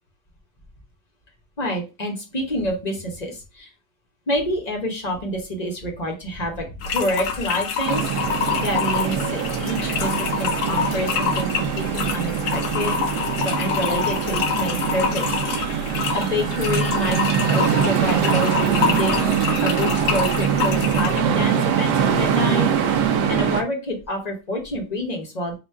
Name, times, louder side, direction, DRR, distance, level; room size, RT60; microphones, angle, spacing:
voice 1, 1.6-3.7 4.3-15.7 16.1-19.3 19.5-22.7 23.0-25.5, equal, 35° left, 1 dB, 0.7 m, -28 dB
sound 1, 6.8-21.2, left 6 dB, 85° left, 1.4 m, -26 dB
sound 2, 7.8-23.6, right 8 dB, 75° right, 1.2 m, -23 dB
4.0 x 2.3 x 4.3 m, 0.29 s
omnidirectional pair, 1.9 m